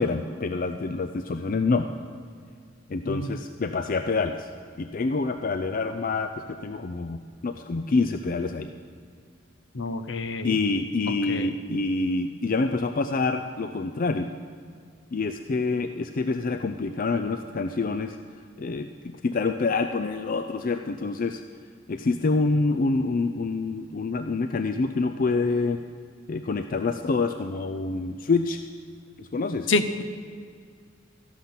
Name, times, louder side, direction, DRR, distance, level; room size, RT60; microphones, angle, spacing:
voice 1, 0.0-1.9 2.9-4.5 4.8-8.7 10.4-14.3 15.1-18.2 18.6-21.4 21.9-25.8 26.3-28.6 29.2-29.7, left 3 dB, 45° left, 8 dB, 0.4 m, -27 dB
voice 2, 9.7-10.5 11.3-11.5 29.7-30.0, left 3 dB, 70° left, 10 dB, 0.8 m, -27 dB
13.5 x 11.5 x 5.9 m, 2.1 s
head